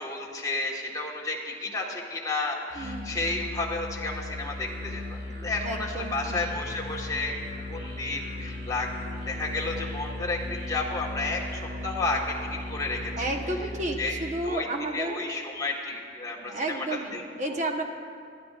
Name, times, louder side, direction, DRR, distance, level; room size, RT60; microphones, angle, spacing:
voice 1, 0.0-8.9 9.2-13.2 14.0-14.1 14.4-14.7 14.9-16.8 17.1-17.2 17.5-17.6, left 2 dB, 20° left, -3 dB, 1.5 m, -32 dB
voice 2, 2.7-3.2 5.6-6.4 13.2-15.3 16.4-17.8, right 1 dB, 40° right, 3 dB, 1.1 m, -32 dB
Musical instrument, 2.7-14.4, left 2 dB, 80° right, 2.7 m, -37 dB
Singing, 6.4-13.6, right 1 dB, 25° right, 2.8 m, -45 dB
24.0 x 12.0 x 2.5 m, 2.4 s
head